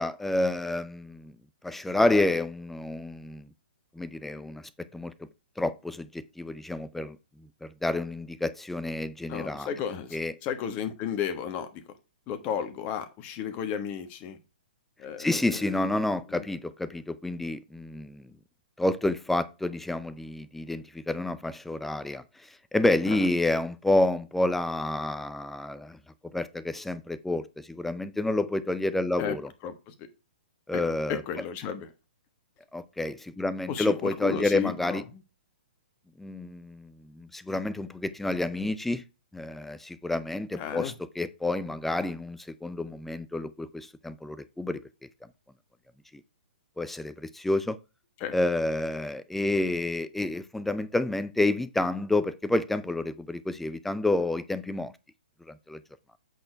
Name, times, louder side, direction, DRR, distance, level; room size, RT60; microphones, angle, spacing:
voice 1, 0.0-1.3 1.6-3.5 4.0-4.6 4.9-5.1 5.6-7.2 7.6-9.7 10.1-10.3 15.2-18.2 18.8-22.2 22.7-26.0 26.3-29.5 30.7-31.2 32.7-35.0 36.2-39.0 39.3-44.8 46.8-47.8 48.3-54.9 55.5-55.8, left 2 dB, 5° left, 0.5 m, -29 dB
voice 2, 9.3-11.8 12.3-14.4 15.0-16.0 16.3-16.4 23.1-23.3 29.2-29.4 29.6-29.9 30.7-31.9 33.7-35.2 40.5-40.9 48.2-48.3, left 8 dB, 30° left, 1.3 m, -34 dB
8.1 x 4.3 x 4.5 m
figure-of-eight pair, 125°, 5 cm